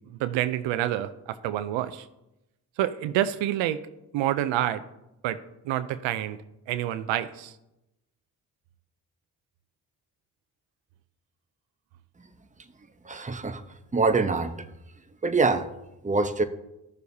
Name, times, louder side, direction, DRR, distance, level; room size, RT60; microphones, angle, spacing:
voice 1, 0.2-2.1 2.8-3.8 4.1-4.8 5.2-5.4 5.6-6.4 6.7-7.5, right 12 dB, 85° right, 12 dB, 0.6 m, -27 dB
voice 2, 13.0-13.6 13.9-14.6 15.2-15.7 16.0-16.4, right 4 dB, 15° right, 9 dB, 0.8 m, -24 dB
14.0 x 6.6 x 2.7 m, 0.92 s
supercardioid pair, 50°, 44 cm